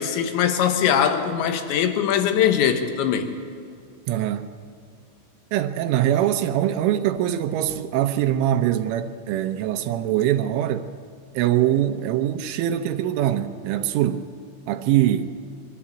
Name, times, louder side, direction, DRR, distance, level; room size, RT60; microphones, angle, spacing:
voice 1, 0.0-3.3, left 8 dB, 75° left, 3.4 m, -21 dB
voice 2, 4.1-4.5 5.5-10.9 11.3-14.2 14.7-15.3, right 12 dB, 85° right, 3.3 m, -23 dB
23.0 x 13.5 x 8.6 m
omnidirectional pair, 5.6 m